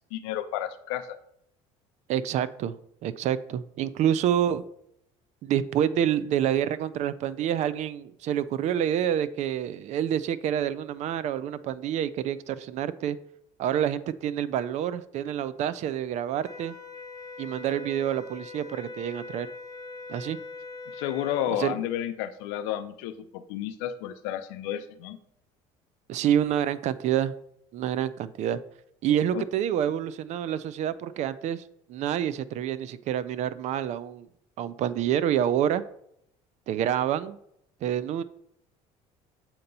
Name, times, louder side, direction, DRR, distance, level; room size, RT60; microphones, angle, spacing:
voice 1, 0.1-1.2 20.9-25.2 29.3-29.4, left 11 dB, 90° left, 10 dB, 0.6 m, -32 dB
voice 2, 2.1-2.7 3.0-4.6 5.4-13.2 13.6-16.7 17.4-19.5 20.1-20.4 21.6-21.8 26.1-27.3 27.7-28.6 29.0-31.6 31.9-34.3 34.6-35.8 36.7-37.4 37.8-38.2, right 10 dB, 55° right, 15 dB, 0.5 m, -27 dB
sound 1, 16.4-21.6, left 3 dB, 25° left, 0.9 m, -42 dB
7.7 x 2.9 x 5.3 m, 0.72 s
supercardioid pair, 105°, 14 cm